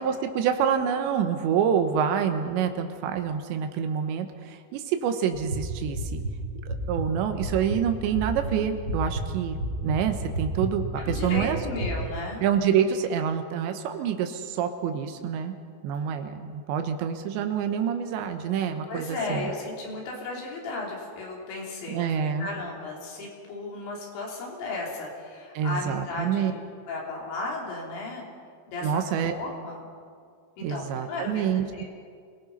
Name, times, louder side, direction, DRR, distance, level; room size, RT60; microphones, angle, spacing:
voice 1, 0.0-6.2 6.7-11.6 12.4-15.6 15.8-19.5 21.9-22.5 25.6-26.5 28.8-29.3 30.6-31.7, right 8 dB, 85° right, 7 dB, 3.4 m, -27 dB
sound 1, 5.3-11.9, right 1 dB, 25° right, 6.3 m, -32 dB
voice 2, 11.0-12.4 18.9-26.6 26.9-28.3 28.7-29.8 30.6-31.9, left 2 dB, 80° left, -2 dB, 5.8 m, -35 dB
26.5 x 18.0 x 5.6 m, 2.1 s
omnidirectional pair, 5.1 m